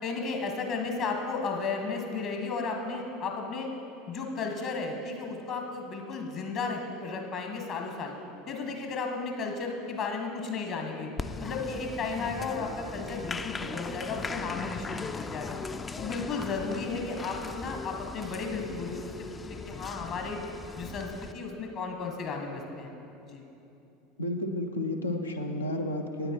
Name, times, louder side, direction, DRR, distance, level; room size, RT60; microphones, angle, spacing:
voice 1, 0.0-3.7 4.1-8.1 8.5-11.1 11.4-15.6 16.0-19.1 19.5-20.4 20.8-22.9 23.3-23.4, left 4 dB, 50° left, 3 dB, 1.4 m, -34 dB
Applause, 11.2-21.3, left 4 dB, 20° left, 0.3 m, -39 dB
voice 2, 24.2-26.3, left 1 dB, 85° left, 5 dB, 0.6 m, -31 dB
9.0 x 8.7 x 4.5 m, 2.8 s
hypercardioid pair, 75°, 0 cm